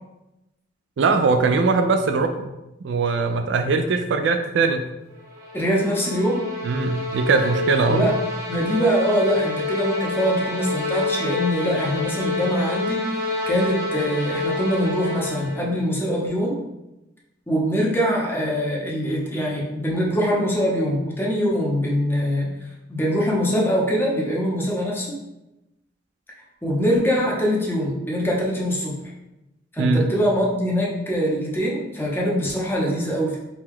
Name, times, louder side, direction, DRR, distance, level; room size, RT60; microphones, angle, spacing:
voice 1, 1.0-2.5 2.8-4.8 6.6-8.1 29.8-30.0, right 4 dB, 65° right, 7 dB, 0.4 m, -21 dB
sound 1, 5.2-15.7, left 3 dB, 20° right, 0.9 m, -28 dB
voice 2, 5.5-6.4 7.9-8.1 8.5-16.6 17.5-25.2 26.6-28.9 29.7-33.4, equal, 10° left, -3 dB, 0.8 m, -23 dB
4.7 x 2.3 x 3.6 m, 0.94 s
head